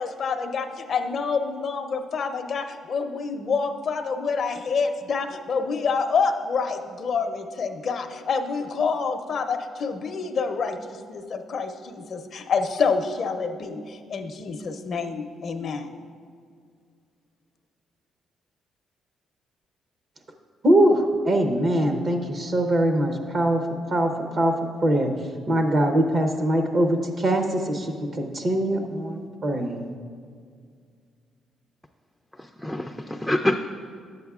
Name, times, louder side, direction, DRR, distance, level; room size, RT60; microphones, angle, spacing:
voice 1, 0.0-15.9, left 5 dB, 55° left, 7 dB, 0.5 m, -27 dB
voice 2, 20.6-23.6 23.9-24.5 24.8-25.1 25.5-29.9, right 1 dB, 45° right, 4 dB, 0.8 m, -22 dB
voice 3, 32.4-33.6, left 1 dB, 5° left, 4 dB, 0.4 m, -26 dB
10.5 x 8.0 x 2.4 m, 2.1 s
cardioid pair, 90°, 0 cm